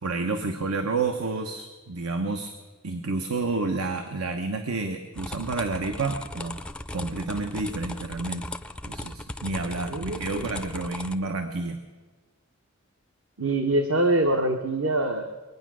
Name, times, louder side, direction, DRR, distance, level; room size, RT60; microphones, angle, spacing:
voice 1, 0.0-2.5 2.8-6.6 6.9-8.5 8.9-11.8, right 3 dB, 90° right, 6 dB, 1.0 m, -30 dB
sound 1, 5.1-11.1, left 1 dB, 5° left, 0.4 m, -37 dB
voice 2, 9.9-10.6 13.4-15.3, right 1 dB, 65° right, 5 dB, 0.9 m, -25 dB
22.5 x 9.4 x 6.2 m, 1.4 s
head